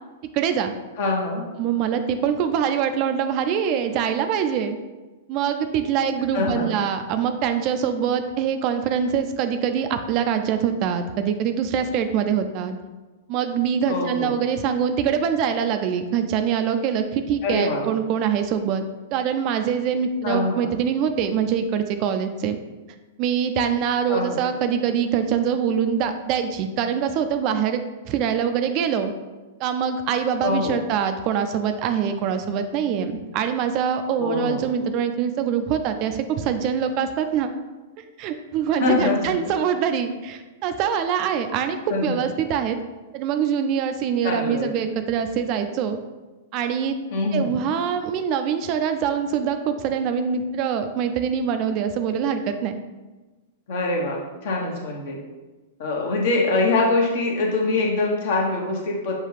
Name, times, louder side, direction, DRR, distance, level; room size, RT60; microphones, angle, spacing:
voice 1, 0.3-0.7 1.6-4.8 5.3-12.8 13.3-18.8 19.1-22.6 23.2-29.1 29.6-37.5 38.0-42.8 43.1-46.0 46.5-47.0 47.3-52.8, right 7 dB, 45° right, 8 dB, 0.4 m, -24 dB
voice 2, 1.0-1.4 6.3-6.7 13.9-14.4 17.4-17.9 20.2-20.7 24.1-24.4 30.4-30.8 34.2-34.7 38.8-39.3 41.9-42.2 44.2-44.7 47.1-47.6 53.7-55.2 55.8-59.1, left 3 dB, 60° left, -1 dB, 1.0 m, -24 dB
5.7 x 2.3 x 3.3 m, 1.2 s
hypercardioid pair, 105°, 0 cm